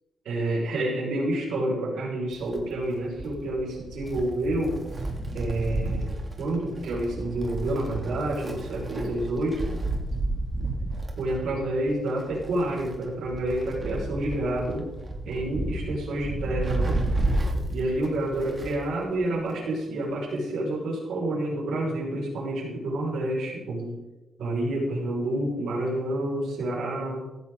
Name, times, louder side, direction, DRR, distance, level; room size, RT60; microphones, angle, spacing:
voice 1, 0.2-4.8 5.3-9.7 11.2-14.9 15.2-17.0 17.7-23.9 24.4-27.2, right 1 dB, 80° right, -4 dB, 6.1 m, -29 dB
Wind, 2.3-18.9 19.2-19.3 20.3-20.4, right 2 dB, 35° right, 2.8 m, -31 dB
16.5 x 13.5 x 4.1 m, 1.0 s
cardioid pair, 95°, 0 cm